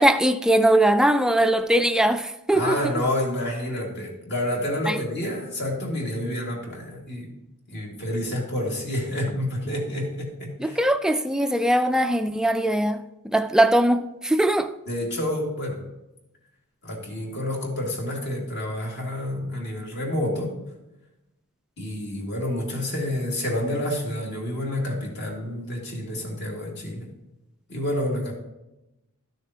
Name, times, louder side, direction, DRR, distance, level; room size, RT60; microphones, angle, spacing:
voice 1, 0.0-2.8 4.9-5.0 10.6-14.7, right 1 dB, 5° right, 0.3 m, -21 dB
voice 2, 2.5-7.3 7.7-10.8 14.9-15.8 16.8-20.5 21.8-27.1 27.7-28.3, left 1 dB, 50° left, 2.1 m, -29 dB
12.0 x 6.6 x 2.8 m
head